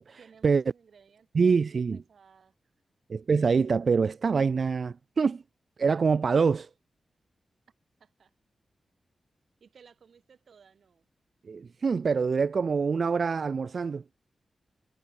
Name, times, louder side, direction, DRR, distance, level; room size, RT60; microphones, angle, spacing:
voice 1, 0.2-2.5 8.0-8.3 9.6-11.1, right 6 dB, 65° right, 7.2 m, -58 dB
voice 2, 1.3-2.0 3.1-5.4 5.8-6.7 11.4-14.0, right 5 dB, 45° right, 0.4 m, -25 dB
wide cardioid pair, 170°, 0 cm